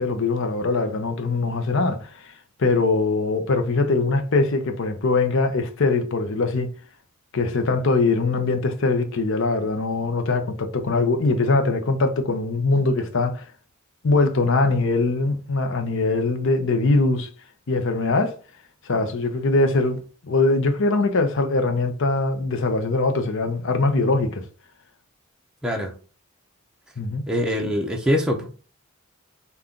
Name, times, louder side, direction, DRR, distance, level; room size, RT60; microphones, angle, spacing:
voice 1, 0.0-2.3 2.6-6.7 7.3-13.4 14.0-17.3 17.7-18.4 18.9-24.4 27.0-27.2, left 3 dB, 55° left, 0.6 m, -22 dB
voice 2, 25.6-25.9 27.3-28.5, equal, 5° right, 0.6 m, -23 dB
5.4 x 2.3 x 3.7 m
head